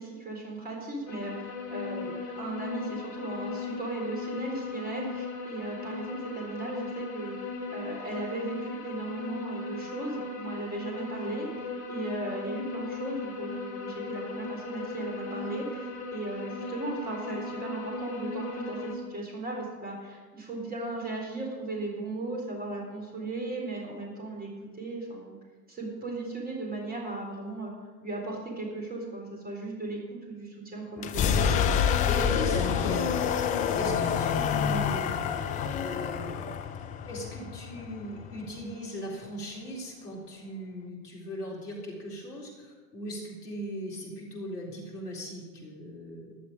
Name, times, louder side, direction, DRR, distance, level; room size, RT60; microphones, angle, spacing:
voice 1, 0.0-24.5 24.8-25.3 25.7-27.7 28.0-31.4, right 2 dB, 20° right, 0 dB, 3.8 m, -37 dB
sound 1, 1.1-18.9, left 3 dB, 35° left, 2.9 m, -37 dB
sound 2, 31.0-38.7, left 7 dB, 15° left, 0.5 m, -27 dB
voice 2, 31.8-33.3 33.8-35.2 35.8-36.5 37.0-46.4, equal, 65° left, -2 dB, 4.1 m, -38 dB
14.5 x 11.5 x 5.1 m, 1.4 s
figure-of-eight pair, 85°, 50 cm